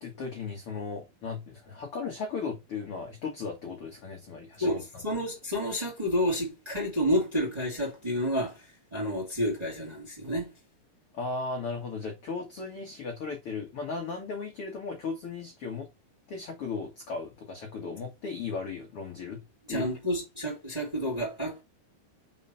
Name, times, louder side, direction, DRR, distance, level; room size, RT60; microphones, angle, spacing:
voice 1, 0.0-5.0 11.1-15.9 16.3-19.4 19.7-19.9, left 4 dB, 60° left, 1.5 m, -36 dB
voice 2, 4.6-8.6 8.9-10.5 19.7-21.6, equal, 15° right, 1.9 m, -30 dB
5.4 x 4.8 x 5.5 m
omnidirectional pair, 4.4 m